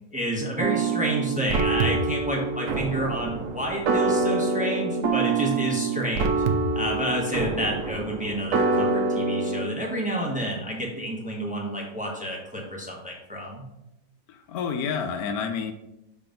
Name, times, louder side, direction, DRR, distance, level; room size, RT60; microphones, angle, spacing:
voice 1, 0.1-6.4 6.7-13.6, equal, 5° right, -2 dB, 1.0 m, -29 dB
sound 1, 0.6-9.7, right 3 dB, 70° right, 1.0 m, -26 dB
voice 2, 14.3-15.7, left 6 dB, 85° left, 6 dB, 1.1 m, -29 dB
5.8 x 3.8 x 5.2 m, 0.88 s
omnidirectional pair, 1.5 m